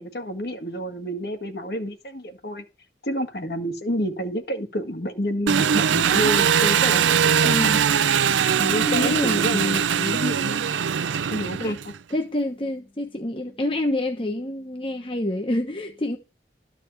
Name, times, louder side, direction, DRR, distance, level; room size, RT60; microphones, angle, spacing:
voice 1, 0.0-2.6 3.0-7.8 8.6-9.8 10.1-10.6 11.3-11.9, equal, 55° left, 1.7 m, -29 dB
Engine, 5.5-12.0, right 8 dB, 85° right, 0.5 m, -21 dB
voice 2, 7.4-7.8 8.9-10.3 11.6-11.7 12.1-16.2, left 1 dB, 30° left, 1.1 m, -27 dB
13.5 x 4.9 x 8.0 m
head